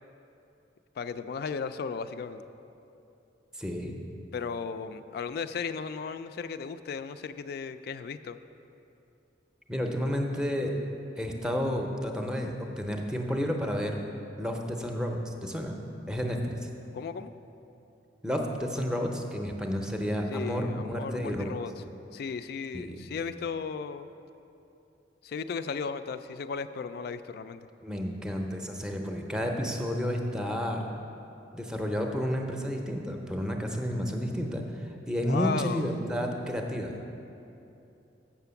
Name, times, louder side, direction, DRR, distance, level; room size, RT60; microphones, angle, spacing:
voice 1, 1.0-2.4 4.3-8.4 16.9-17.3 20.3-21.8 22.1-24.1 25.2-27.7 35.2-35.9, left 5 dB, 60° left, 12 dB, 0.3 m, -35 dB
voice 2, 3.5-4.0 9.7-10.7 11.2-14.0 14.4-15.8 16.1-16.5 18.2-21.5 22.7-23.0 27.8-30.9 31.5-37.1, equal, 5° right, 2 dB, 0.6 m, -31 dB
7.6 x 5.8 x 6.9 m, 2.8 s
head